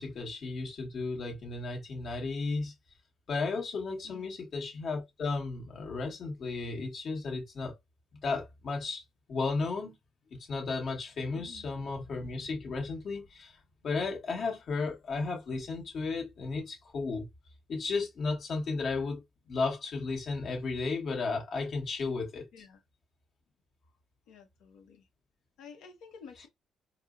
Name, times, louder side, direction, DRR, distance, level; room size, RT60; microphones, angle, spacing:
voice 1, 0.0-2.7 3.3-7.7 8.2-9.0 9.3-10.0 10.3-13.6 13.8-17.3 17.7-22.5, left 4 dB, 60° left, 1.2 m, -34 dB
voice 2, 4.0-4.3 11.3-11.9 22.5-22.8 24.3-25.1 25.6-26.5, left 6 dB, 90° left, 0.7 m, -52 dB
4.2 x 2.0 x 2.4 m
cardioid pair, 90°, 0 cm